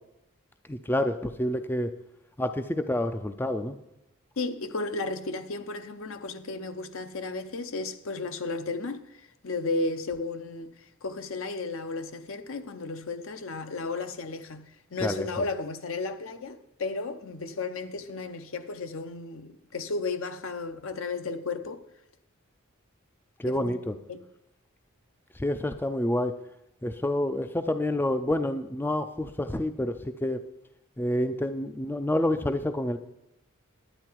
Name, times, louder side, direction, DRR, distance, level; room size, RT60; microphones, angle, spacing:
voice 1, 0.7-1.9 2.4-3.8 15.0-15.3 23.4-23.9 25.4-26.4 26.8-30.4 31.0-33.0, left 1 dB, 10° left, 0.3 m, -28 dB
voice 2, 4.4-9.0 9.4-10.7 11.0-21.8 23.5-23.7 24.1-24.2, left 3 dB, 65° left, 0.7 m, -34 dB
10.0 x 9.5 x 4.6 m
head